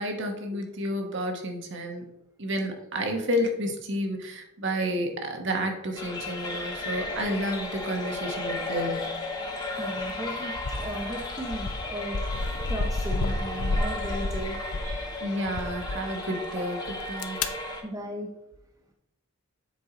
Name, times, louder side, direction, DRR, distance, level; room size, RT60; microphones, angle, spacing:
voice 1, 0.0-2.1 2.4-9.1 15.2-17.4, equal, 55° right, 3 dB, 1.1 m, -30 dB
sound 1, 6.0-17.8, left 2 dB, 20° left, 0.9 m, -35 dB
voice 2, 9.8-12.2 12.7-15.3 17.8-18.3, right 1 dB, 15° right, 1 dB, 0.5 m, -36 dB
sound 2, 10.0-10.2 10.6-15.1 15.5-16.0 16.9-17.5, left 2 dB, 85° left, 0.6 m, -31 dB
7.4 x 4.4 x 3.9 m, 0.84 s
head